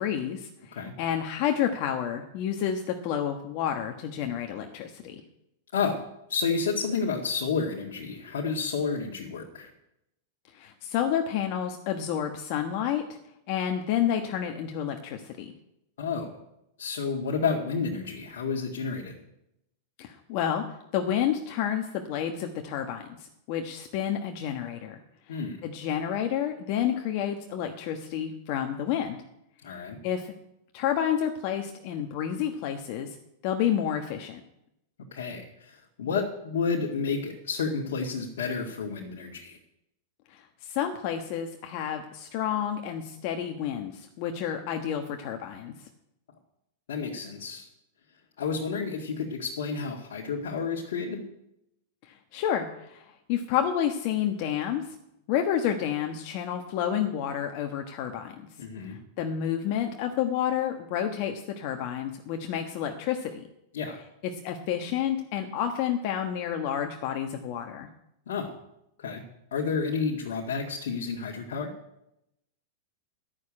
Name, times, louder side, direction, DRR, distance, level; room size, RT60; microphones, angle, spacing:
voice 1, 0.0-5.2 10.5-13.0 13.5-15.5 20.0-20.7 20.9-25.0 25.3-29.2 30.0-30.3 30.7-33.1 33.4-34.4 40.3-45.7 52.1-55.0 55.3-58.3 58.9-63.5 64.4-67.9, left 9 dB, 55° left, 4 dB, 1.3 m, -30 dB
voice 2, 5.7-6.0 6.3-9.7 16.0-16.4 16.8-19.2 25.3-25.6 29.6-30.0 35.1-39.6 46.9-47.7 48.4-51.2 58.6-59.0 63.7-64.0 68.3-68.5 69.0-69.2 69.5-71.7, left 5 dB, 80° left, -2 dB, 2.0 m, -30 dB
12.0 x 6.7 x 8.7 m, 0.82 s
hypercardioid pair, 125°, 0 cm